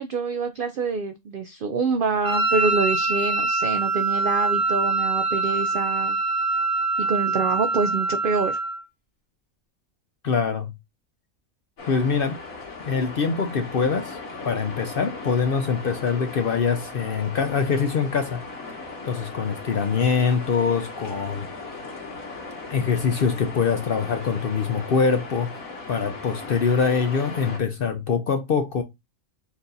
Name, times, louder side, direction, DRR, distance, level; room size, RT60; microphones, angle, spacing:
voice 1, 0.0-6.2 7.0-8.6, right 4 dB, 75° right, 0.4 m, -26 dB
Wind instrument woodwind instrument, 2.2-8.8, right 2 dB, 20° right, 0.7 m, -24 dB
voice 2, 10.2-10.7 11.9-12.4 12.9-14.2 14.4-18.4 19.0-21.5 22.7-25.6 25.9-28.8, left 5 dB, 60° left, 0.6 m, -24 dB
sound 1, 11.8-27.6, left 3 dB, 80° left, 2.1 m, -37 dB
4.5 x 2.7 x 3.8 m
omnidirectional pair, 1.4 m